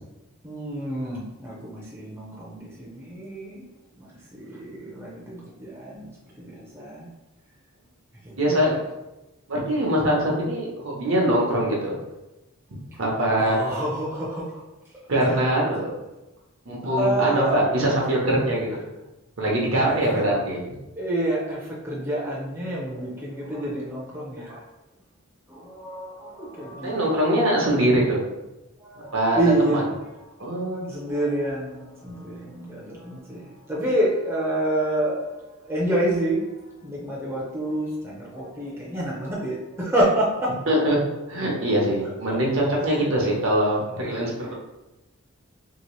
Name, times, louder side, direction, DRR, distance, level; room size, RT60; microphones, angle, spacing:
voice 1, 0.4-3.6 4.0-4.1 4.4-6.1 6.4-7.1 8.3-8.4 8.6-8.7 10.2-10.3 13.4-14.5 16.8-17.6 19.9-20.0 21.0-24.6 25.5-27.2 28.8-29.8 30.4-30.5 30.9-35.3 35.6-36.4 36.8-40.5 42.3-42.4 42.9-43.1 44.2-44.5, right 1 dB, 10° right, -6 dB, 0.5 m, -28 dB
voice 2, 8.4-8.8 9.5-12.0 13.0-13.6 15.1-15.9 16.7-18.9 19.4-20.6 21.9-22.0 26.8-28.2 29.0-29.9 30.4-30.8 40.7-41.0 41.3-44.5, right 1 dB, 65° right, -3 dB, 0.9 m, -23 dB
2.9 x 2.8 x 3.1 m, 0.99 s
head